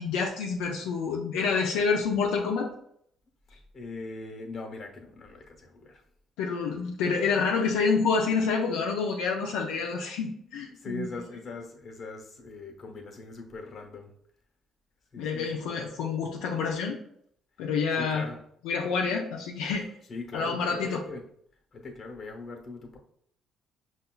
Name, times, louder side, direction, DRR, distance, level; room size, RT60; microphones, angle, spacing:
voice 1, 0.0-2.7 6.4-11.1 15.2-17.0 17.6-18.2 18.6-19.9 20.3-21.0, left 5 dB, 85° left, -1 dB, 0.4 m, -28 dB
voice 2, 3.7-6.0 10.7-14.1 15.1-15.7 18.0-18.4 20.1-21.2 21.7-23.0, left 3 dB, 45° left, 2 dB, 0.9 m, -40 dB
5.3 x 2.2 x 2.3 m, 0.69 s
supercardioid pair, 75°, 0 cm